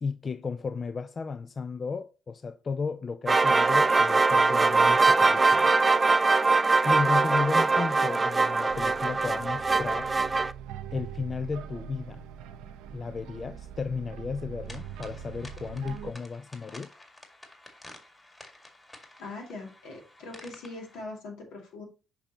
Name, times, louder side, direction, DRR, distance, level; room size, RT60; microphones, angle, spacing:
voice 1, 0.0-5.7 6.8-10.1 10.9-12.2 12.9-16.9, left 5 dB, 40° left, 0.4 m, -34 dB
sound 1, 3.3-10.5, right 3 dB, 25° right, 0.4 m, -22 dB
sound 2, 8.7-16.1, right 8 dB, 85° right, 0.6 m, -43 dB
sound 3, 14.7-21.0, left 1 dB, 20° left, 2.0 m, -51 dB
voice 2, 19.2-21.9, left 3 dB, 85° left, 2.4 m, -41 dB
6.8 x 5.4 x 2.9 m
supercardioid pair, 70°, 0 cm